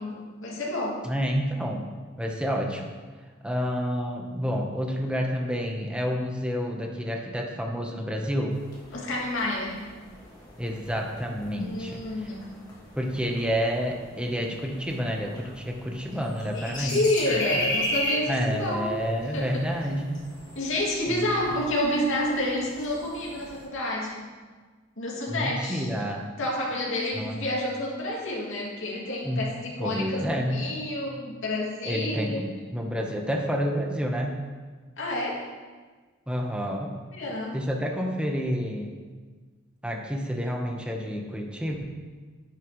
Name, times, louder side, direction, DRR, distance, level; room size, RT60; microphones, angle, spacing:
voice 1, 0.0-1.1 8.9-9.8 11.6-12.5 16.5-19.0 19.3-19.8 20.5-24.3 25.0-25.9 26.4-32.4 35.0-35.5 37.1-37.6, left 1 dB, 65° left, -4 dB, 2.5 m, -29 dB
voice 2, 1.0-1.9 2.2-3.0 3.4-8.6 10.6-12.0 12.9-17.0 18.3-20.2 21.1-21.5 25.3-26.3 27.2-27.4 29.2-29.4 29.8-30.6 31.8-34.4 36.3-36.9 37.5-38.9 39.8-41.8, equal, 5° right, 1 dB, 1.0 m, -29 dB
sound 1, 8.5-23.7, left 1 dB, 20° left, 1.9 m, -37 dB
10.5 x 10.0 x 3.2 m, 1.4 s
head